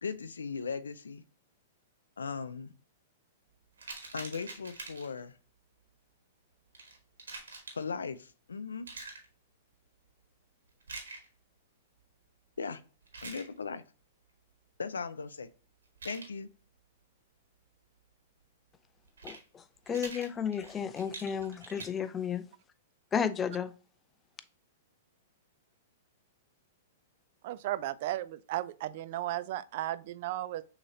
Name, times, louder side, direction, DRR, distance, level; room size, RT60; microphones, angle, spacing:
voice 1, 0.0-1.2 2.2-2.7 4.1-5.4 7.7-8.9 12.6-12.8 13.2-13.8 14.8-15.5 16.0-16.5, left 5 dB, 85° left, 0.5 m, -38 dB
sound 1, 3.8-5.2 6.7-7.8 8.9-9.3 10.8-11.3 13.0-13.5 15.9-16.3 19.1-19.4 19.9-21.9, right 3 dB, 85° right, 1.4 m, -45 dB
voice 2, 19.2-22.4 23.1-23.7, left 7 dB, 20° left, 0.4 m, -33 dB
voice 3, 27.4-30.6, right 14 dB, 55° right, 0.3 m, -35 dB
6.3 x 2.9 x 2.7 m
hypercardioid pair, 115°, 0 cm